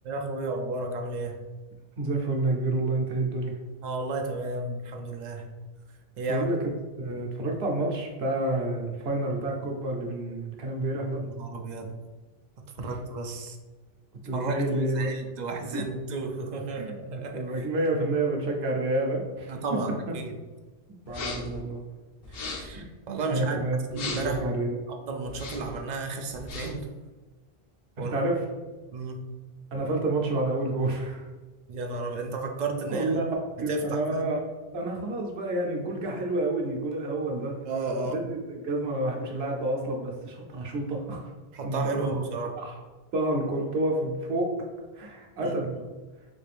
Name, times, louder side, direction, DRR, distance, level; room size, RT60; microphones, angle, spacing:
voice 1, 0.0-1.4 3.8-5.5 6.2-6.5 11.2-12.0 12.8-13.6 14.3-17.5 19.5-19.9 20.1-20.3 22.3-23.6 23.9-24.5 24.9-26.9 28.0-28.3 28.9-29.2 31.7-33.2 33.7-34.2 37.7-38.2 41.5-42.5 45.4-45.6, right 3 dB, 55° right, 3 dB, 0.6 m, -33 dB
voice 2, 2.0-3.5 6.3-6.6 7.0-11.2 12.8-13.0 14.3-15.1 15.7-15.8 16.8-19.6 21.1-21.8 22.7-22.8 23.3-24.8 28.0-28.5 29.7-31.3 32.9-33.2 33.6-34.4 34.7-37.6 38.0-41.3 41.6-42.2 42.5-42.7 43.1-44.5 44.9-45.7, right 2 dB, 85° right, 0 dB, 1.0 m, -29 dB
sound 1, 21.1-21.6 22.2-22.8 23.9-24.4 25.3-25.8 26.3-26.9, left 3 dB, 70° left, 0.8 m, -37 dB
4.0 x 2.5 x 3.3 m, 1.3 s
omnidirectional pair, 1.0 m